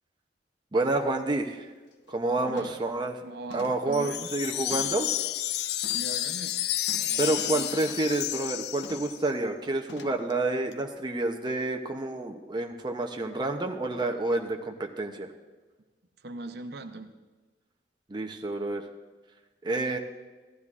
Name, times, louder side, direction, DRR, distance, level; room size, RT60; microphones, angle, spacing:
voice 1, 0.7-1.7 2.1-3.2 3.5-5.1 7.2-15.3 18.1-18.8 19.6-20.0, right 2 dB, 25° right, 4 dB, 0.6 m, -29 dB
sound 1, 0.8-0.9 1.3-1.5 1.9-2.2 2.6-3.0 3.5-5.2 5.8-6.2 6.9-8.2 8.8-9.2 9.9-10.3 10.7-10.8, left 2 dB, 90° left, 0.8 m, -47 dB
voice 2, 2.4-2.9 3.2-4.3 5.8-6.5 7.0-7.8 16.2-17.1, right 2 dB, 65° right, 7 dB, 0.7 m, -41 dB
Wind chime, 3.9-9.3, left 13 dB, 65° left, 0.3 m, -31 dB
15.0 x 12.0 x 2.4 m, 1.3 s
head